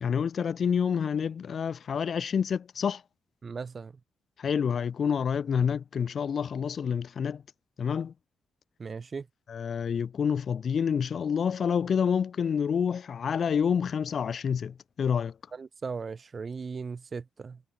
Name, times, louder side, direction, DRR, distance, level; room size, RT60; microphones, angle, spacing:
voice 1, 0.0-3.0 4.4-7.4 7.8-8.1 9.5-15.3, left 7 dB, 55° left, 0.4 m, -28 dB
voice 2, 3.4-3.9 8.8-9.3 15.5-17.6, right 5 dB, 40° right, 0.5 m, -37 dB
cardioid pair, 95°, 0 cm